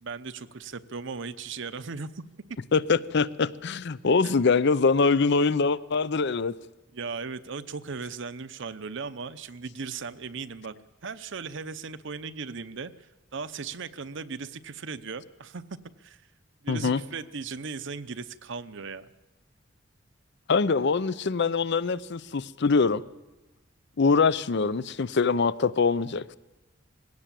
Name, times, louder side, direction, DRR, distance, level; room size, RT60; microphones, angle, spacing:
voice 1, 0.0-2.6 4.2-4.3 6.9-10.7 11.0-16.2 16.6-19.1, right 4 dB, 65° right, 0.8 m, -37 dB
voice 2, 2.7-6.5 16.7-17.0 20.5-23.0 24.0-26.4, left 4 dB, 60° left, 0.6 m, -23 dB
20.5 x 17.0 x 7.5 m
head